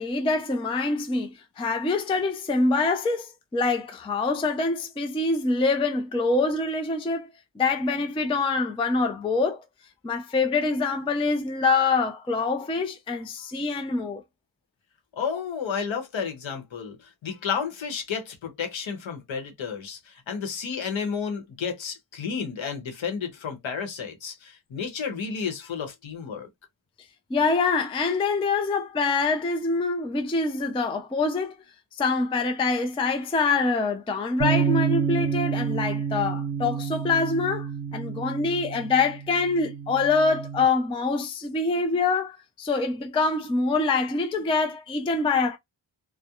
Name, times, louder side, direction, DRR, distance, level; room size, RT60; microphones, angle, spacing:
voice 1, 0.0-7.3 7.6-9.6 10.0-14.2 27.3-31.6 32.0-45.6, left 3 dB, 15° left, 0.3 m, -25 dB
voice 2, 15.2-26.5, left 6 dB, 70° left, 0.9 m, -32 dB
sound 1, 34.4-40.7, right 6 dB, 60° right, 0.7 m, -29 dB
2.3 x 2.1 x 2.8 m
wide cardioid pair, 145°, 48 cm